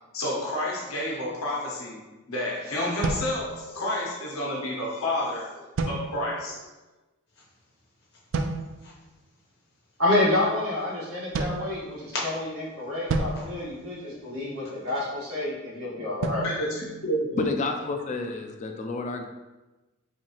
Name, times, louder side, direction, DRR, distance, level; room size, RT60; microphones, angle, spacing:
voice 1, 0.1-2.0 2.3-6.6 16.4-17.3, left 1 dB, 85° left, -4 dB, 1.1 m, -30 dB
sound 1, 3.0-4.1 5.8-6.6 8.3-9.0 11.3-12.4 13.1-14.6 16.2-17.7, right 3 dB, 60° right, 0.3 m, -33 dB
sound 2, 7.3-15.0, left 2 dB, 50° left, 0.9 m, -44 dB
voice 2, 10.0-16.5, left 2 dB, 90° right, -6 dB, 1.4 m, -28 dB
voice 3, 17.4-19.2, left 3 dB, 35° left, 4 dB, 0.3 m, -29 dB
4.3 x 2.7 x 2.9 m, 1.1 s
head